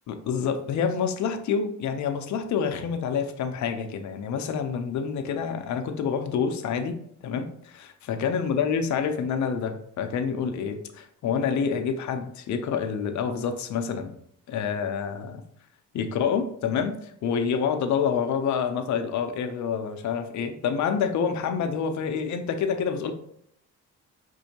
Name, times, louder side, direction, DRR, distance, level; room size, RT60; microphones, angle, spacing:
voice 1, 0.1-7.0 7.2-14.1 14.5-15.4 15.9-23.1, left 6 dB, 70° left, 7 dB, 0.6 m, -27 dB
5.1 x 2.7 x 2.8 m, 0.69 s
cardioid pair, 90°, 30 cm